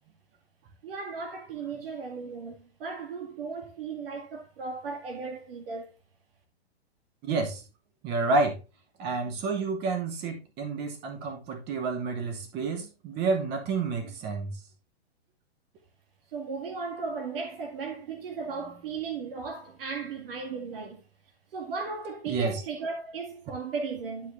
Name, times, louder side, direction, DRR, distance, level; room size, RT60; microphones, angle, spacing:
voice 1, 0.8-5.9 16.3-21.0 21.5-24.3, right 4 dB, 60° right, 2.1 m, -36 dB
voice 2, 7.2-7.6 8.0-8.6 9.0-14.5 22.3-22.6, right 3 dB, 30° right, 2.6 m, -29 dB
11.5 x 4.9 x 3.5 m
hypercardioid pair, 130°, 32 cm